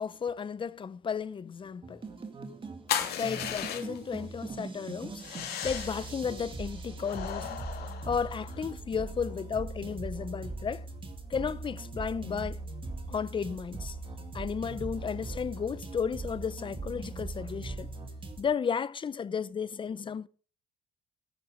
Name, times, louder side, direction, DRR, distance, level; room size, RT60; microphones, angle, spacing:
voice 1, 0.0-2.0 3.2-7.5 8.0-10.9 11.3-12.6 13.1-14.0 14.3-17.9 18.4-20.3, left 6 dB, 30° left, 0.7 m, -33 dB
sound 1, 1.8-18.4, right 3 dB, 30° right, 2.5 m, -40 dB
sound 2, 2.9-4.2 5.2-6.1 7.0-8.7, left 9 dB, 70° left, 3.0 m, -36 dB
13.5 x 10.5 x 5.1 m
cardioid pair, 110°, 17 cm